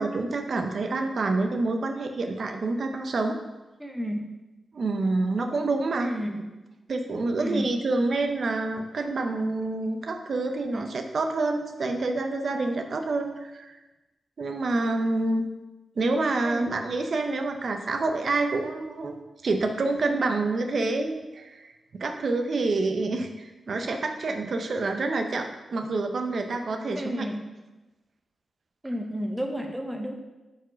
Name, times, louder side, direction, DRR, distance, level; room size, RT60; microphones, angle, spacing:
voice 1, 0.0-3.4 4.7-6.1 6.9-13.8 14.4-15.4 16.0-19.1 19.4-27.3, right 3 dB, 45° right, 5 dB, 0.7 m, -27 dB
voice 2, 3.8-4.2 6.0-6.5 7.4-7.7 10.7-10.9 16.4-16.7 26.9-27.4 28.8-30.1, equal, 5° right, 2 dB, 0.7 m, -31 dB
6.1 x 5.0 x 5.1 m, 1.1 s
wide cardioid pair, 180°, 0 cm